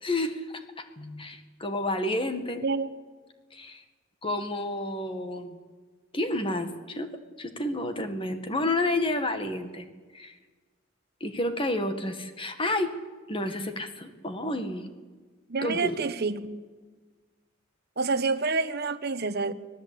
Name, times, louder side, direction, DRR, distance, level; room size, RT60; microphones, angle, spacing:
voice 1, 0.0-2.6 3.5-3.8 4.2-5.6 6.1-7.1 7.4-9.9 10.1-10.4 11.2-12.9 13.3-14.9 15.6-16.0, left 1 dB, 25° left, 1.9 m, -30 dB
voice 2, 15.5-16.5 18.0-19.5, right 4 dB, 50° right, 1.2 m, -28 dB
25.0 x 18.5 x 8.7 m
head